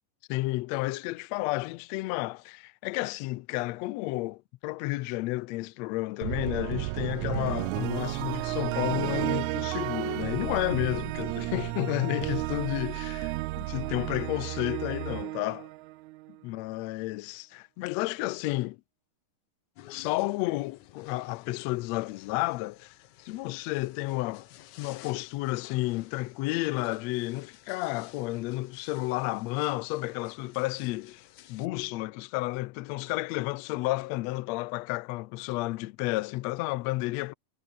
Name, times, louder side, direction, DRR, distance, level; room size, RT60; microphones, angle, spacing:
voice 1, 0.3-15.7 16.4-18.8 19.9-23.0 23.2-24.5 24.8-31.2 31.5-37.3, left 20 dB, 90° left, 1.5 m, -31 dB
sound 1, 6.2-16.4, right 20 dB, 80° right, 1.7 m, -33 dB
sound 2, 19.8-31.7, left 14 dB, 70° left, 2.3 m, -54 dB
omnidirectional pair, 3.8 m